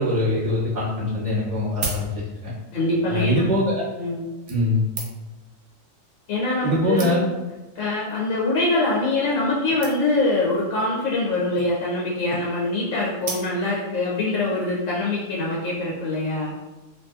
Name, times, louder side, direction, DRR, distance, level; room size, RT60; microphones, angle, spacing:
voice 1, 0.0-2.1 2.4-2.5 3.1-3.8 4.5-4.8 6.6-7.2, left 1 dB, 15° left, -10 dB, 0.9 m, -22 dB
sound 1, 1.7-2.6 3.5-3.7 4.5-5.4 6.3-6.4 6.6-6.7 7.0-7.5 8.2-8.4 8.7-8.8 9.0-9.1 9.3-9.5 9.8-10.3 11.3-11.8 13.2-13.9 14.4-14.5, right 4 dB, 85° right, 1.1 m, -35 dB
voice 2, 2.7-3.4 4.0-4.4 6.3-7.2 7.7-16.5, left 2 dB, 75° left, -5 dB, 0.9 m, -24 dB
2.6 x 2.6 x 2.3 m, 1.1 s
omnidirectional pair, 1.4 m